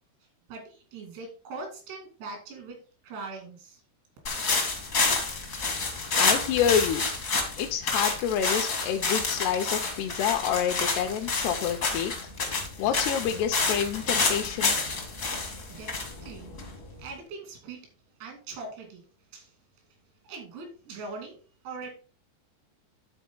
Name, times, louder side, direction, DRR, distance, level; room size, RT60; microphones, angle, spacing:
voice 1, 0.5-2.8 3.0-3.8 15.5-16.6 17.0-17.9 18.2-19.0 19.3-19.6 19.9-20.0 20.2-21.4 21.6-21.9, right 3 dB, 85° right, 2 dB, 4.8 m, -41 dB
sound 1, 4.2-17.0, left 3 dB, 55° left, 0.9 m, -28 dB
voice 2, 6.2-7.0 7.6-12.1 12.8-14.8, left 8 dB, 80° left, 3 dB, 2.7 m, -28 dB
12.0 x 4.3 x 3.8 m, 0.37 s
omnidirectional pair, 4.8 m